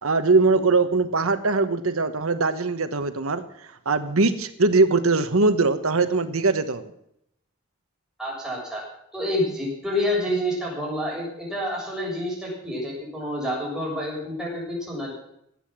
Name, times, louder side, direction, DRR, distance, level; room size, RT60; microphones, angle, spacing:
voice 1, 0.0-6.9, right 3 dB, 85° right, 10 dB, 1.2 m, -21 dB
voice 2, 8.2-8.8 9.1-15.2, left 1 dB, 5° right, -4 dB, 7.1 m, -28 dB
19.5 x 8.8 x 7.4 m, 0.75 s
head